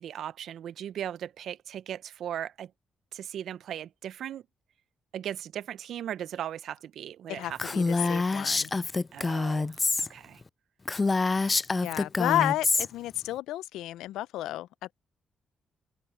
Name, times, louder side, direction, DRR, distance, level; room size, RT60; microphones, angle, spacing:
voice 1, 0.0-2.7 3.1-4.4 5.1-8.2 9.1-10.4, right 10 dB, 70° right, 0.7 m, -38 dB
voice 2, 7.3-8.7 11.8-14.9, left 14 dB, 80° left, 0.5 m, -31 dB
Female speech woman speaking, 7.6-10.1 10.4-10.5 10.9-12.9, left 3 dB, 30° left, 0.4 m, -26 dB
open air
supercardioid pair, 55°, 0 cm